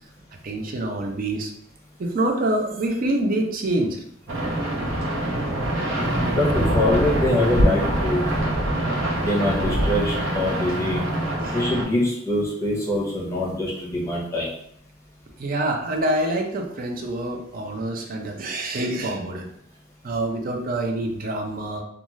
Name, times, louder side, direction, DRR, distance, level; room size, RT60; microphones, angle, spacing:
voice 1, 0.4-1.5 2.0-4.0 11.4-11.6 15.4-19.5 20.0-21.8, right 1 dB, 45° right, 2 dB, 0.5 m, -26 dB
sound 1, 4.3-11.8, right 1 dB, 80° right, 0.7 m, -24 dB
voice 2, 5.9-8.3 9.2-11.0 11.5-14.5, left 1 dB, 15° left, -6 dB, 0.8 m, -24 dB
2.5 x 2.3 x 3.0 m, 0.72 s
head